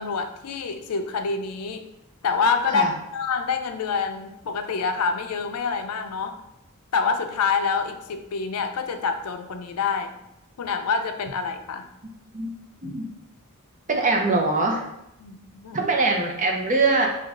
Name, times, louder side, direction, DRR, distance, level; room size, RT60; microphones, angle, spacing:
voice 1, 0.0-1.9 2.2-2.9 3.1-6.4 6.9-10.1 10.6-11.9 15.2-15.8, left 5 dB, 90° left, 7 dB, 0.5 m, -26 dB
voice 2, 13.9-14.8 15.7-17.1, right 3 dB, 35° right, 2 dB, 0.6 m, -22 dB
5.0 x 2.4 x 3.6 m, 0.84 s
head